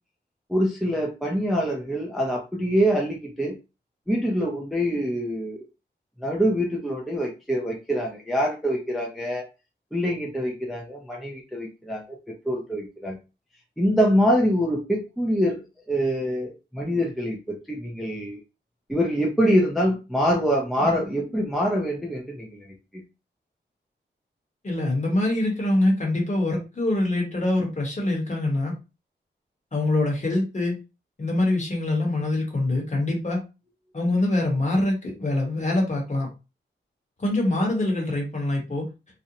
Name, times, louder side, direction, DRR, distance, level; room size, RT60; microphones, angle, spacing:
voice 1, 0.5-3.5 4.1-5.6 6.2-9.4 9.9-12.2 12.4-13.2 13.8-15.6 15.9-18.4 18.9-22.7, equal, ahead, -1 dB, 0.5 m, -25 dB
voice 2, 24.6-28.7 29.7-30.8 31.2-33.4 33.9-36.3 37.2-38.9, left 2 dB, 40° left, 0 dB, 1.0 m, -24 dB
2.5 x 2.1 x 2.8 m, 0.29 s
wide cardioid pair, 135°, 19 cm